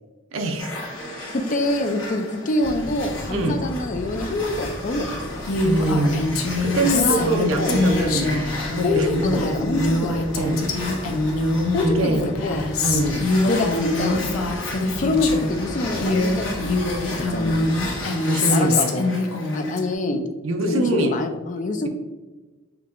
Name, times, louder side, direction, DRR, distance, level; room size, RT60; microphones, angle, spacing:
voice 1, 0.3-0.8 3.3-3.6 5.6-9.4 10.3-10.7 11.8-12.3 12.8-13.2 18.3-19.0 20.4-21.2, right 2 dB, 70° right, 4 dB, 0.5 m, -24 dB
sound 1, 0.6-19.9, left 2 dB, 65° left, 1.0 m, -35 dB
voice 2, 1.3-5.5 6.7-8.1 8.8-10.2 11.7-12.6 12.9-14.3 15.0-16.7 17.0-17.8 18.5-19.1 19.5-20.2 20.6-21.9, left 2 dB, 40° left, 5 dB, 0.4 m, -25 dB
sound 2, 2.6-18.1, equal, 10° left, 1.1 m, -36 dB
Female speech woman speaking, 5.5-15.6 15.9-19.8, left 2 dB, 90° left, 0.6 m, -24 dB
6.0 x 2.8 x 2.5 m, 1.2 s
head